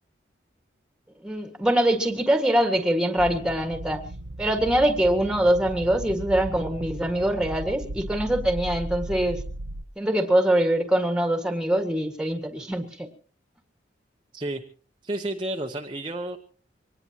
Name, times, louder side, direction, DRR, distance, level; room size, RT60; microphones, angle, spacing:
voice 1, 1.2-4.0 4.4-9.4 10.0-13.1, right 1 dB, 5° right, 6 dB, 1.8 m, -23 dB
sound 1, 3.2-9.8, right 1 dB, 85° right, 0.8 m, -36 dB
voice 2, 15.0-16.4, right 1 dB, 25° right, 2 dB, 1.0 m, -31 dB
24.5 x 19.5 x 2.9 m, 0.39 s
head